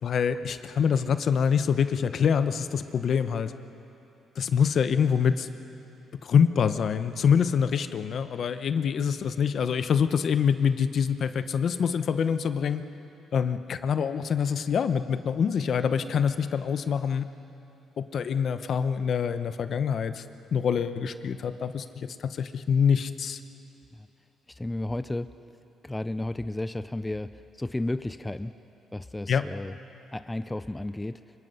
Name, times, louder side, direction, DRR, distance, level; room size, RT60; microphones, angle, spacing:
voice 1, 0.0-3.5 4.4-5.5 6.2-12.8 13.3-17.3 18.0-20.2 20.5-23.4 29.3-29.4, left 7 dB, 60° left, 10 dB, 1.0 m, -25 dB
voice 2, 24.6-25.3 25.8-27.3 27.6-28.5 28.9-29.8 30.1-31.2, left 1 dB, 10° left, 12 dB, 0.5 m, -32 dB
25.5 x 24.0 x 5.7 m, 2.9 s
cardioid pair, 90°, 0 cm